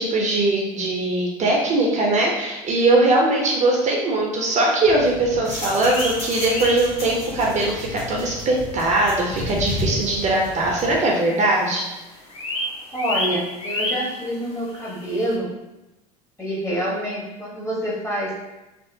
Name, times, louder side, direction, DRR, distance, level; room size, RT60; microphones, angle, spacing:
voice 1, 0.0-11.8, right 2 dB, 40° right, -2 dB, 0.6 m, -20 dB
sound 1, 4.8-11.0, left 1 dB, 75° left, 1.0 m, -32 dB
sound 2, 5.8-7.5 7.9-8.0 8.5-8.6 9.3-9.4 9.6-9.7 9.9-11.1 11.4-11.7 12.0-15.4, left 1 dB, 30° left, 0.6 m, -30 dB
voice 2, 12.9-15.5 16.4-18.3, equal, 15° left, -5 dB, 1.0 m, -27 dB
2.8 x 2.0 x 2.6 m, 1.0 s
hypercardioid pair, 75°, 19 cm